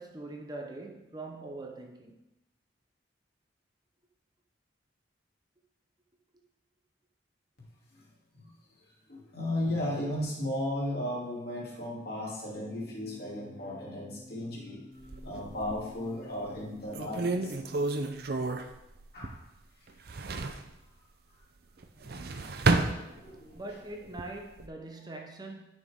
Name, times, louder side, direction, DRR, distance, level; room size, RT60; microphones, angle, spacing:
voice 1, 0.0-2.2 23.5-25.6, right 2 dB, 20° right, 0.8 m, -42 dB
voice 2, 9.1-14.8 15.2-17.5 19.1-19.4 22.0-23.6, left 1 dB, 60° left, 2.8 m, -36 dB
sound 1, 12.5-17.9, left 1 dB, 40° left, 1.8 m, -52 dB
sound 2, 15.0-16.0 16.5-16.6 16.9-19.6 19.9-20.7 21.8-23.6 24.0-24.7, right 3 dB, 55° right, 0.6 m, -31 dB
10.5 x 6.3 x 3.6 m
head